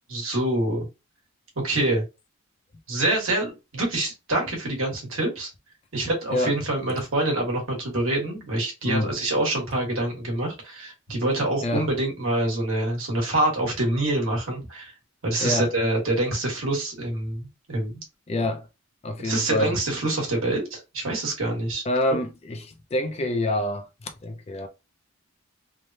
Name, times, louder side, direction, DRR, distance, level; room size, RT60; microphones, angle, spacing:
voice 1, 0.1-0.9 1.6-2.0 2.9-5.5 5.9-14.9 15.2-18.0 19.2-21.8, right 1 dB, 70° right, 1.3 m, -26 dB
voice 2, 8.8-9.1 11.6-11.9 15.4-15.7 18.3-18.7 19.0-19.8 21.9-24.7, left 1 dB, 30° left, 0.3 m, -27 dB
3.2 x 2.1 x 2.6 m
head